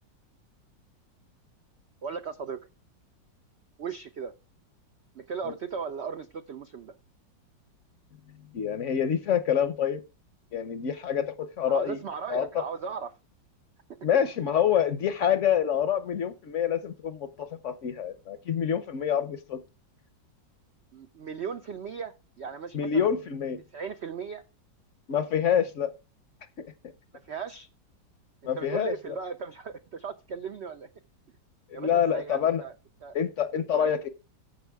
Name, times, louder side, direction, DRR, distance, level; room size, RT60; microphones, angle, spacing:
voice 1, 2.0-2.7 3.8-4.3 5.1-6.9 11.7-13.1 20.9-23.2 23.7-24.4 27.2-27.7 28.5-30.9 31.7-32.7 33.0-33.2 33.5-33.9, right 6 dB, 85° right, 0.5 m, -37 dB
voice 2, 8.5-10.0 10.5-12.0 12.3-12.6 14.0-19.6 22.7-23.6 25.1-25.9 26.6-26.7 28.4-29.2 31.7-32.6 33.1-34.1, left 8 dB, 55° left, 0.8 m, -27 dB
14.5 x 5.4 x 3.5 m
omnidirectional pair, 2.0 m